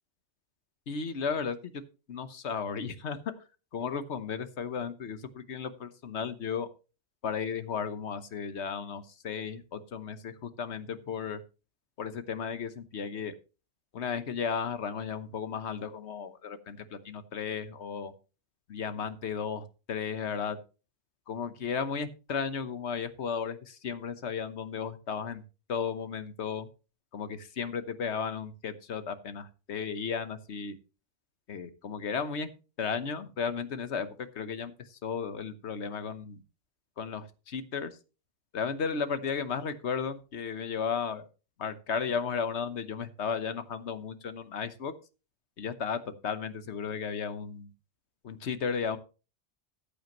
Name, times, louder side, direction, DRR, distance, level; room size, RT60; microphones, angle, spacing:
voice 1, 0.9-1.8 2.1-3.2 3.7-6.7 7.2-11.4 12.0-13.3 13.9-18.1 18.7-20.6 21.3-25.4 25.7-26.7 27.1-30.8 31.5-32.5 32.8-36.4 37.0-37.9 38.5-41.3 41.6-44.9 45.6-47.7 48.2-49.0, left 6 dB, 85° left, 11 dB, 1.3 m, -34 dB
14.5 x 8.6 x 3.0 m, 0.32 s
omnidirectional pair, 1.1 m